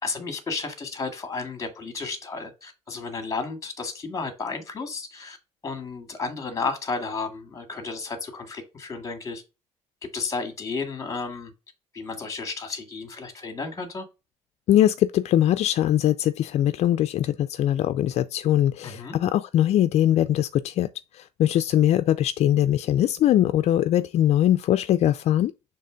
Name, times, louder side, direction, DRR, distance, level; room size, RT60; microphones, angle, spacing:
voice 1, 0.0-5.4 5.6-9.4 10.1-11.5 11.9-14.1 18.8-19.2, left 4 dB, 30° left, 2.0 m, -32 dB
voice 2, 14.7-25.5, left 12 dB, 65° left, 0.4 m, -21 dB
6.7 x 3.4 x 5.0 m
cardioid pair, 115°, 12 cm